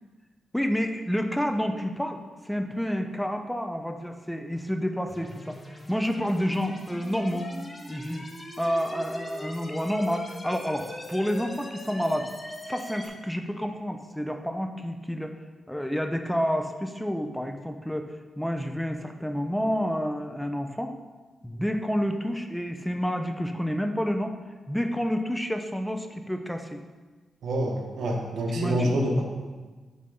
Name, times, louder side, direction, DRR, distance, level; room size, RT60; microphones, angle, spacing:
voice 1, 0.5-5.6 5.9-7.5 7.9-8.3 8.6-12.3 12.7-15.3 15.7-20.9 21.4-24.4 24.7-26.8 28.5-29.0, equal, 5° left, 6 dB, 0.5 m, -29 dB
sound 1, 5.1-13.1, left 1 dB, 25° left, 1.1 m, -41 dB
voice 2, 27.4-29.2, equal, 80° right, 1 dB, 1.0 m, -26 dB
6.6 x 3.4 x 5.2 m, 1.3 s
cardioid pair, 65°, 0 cm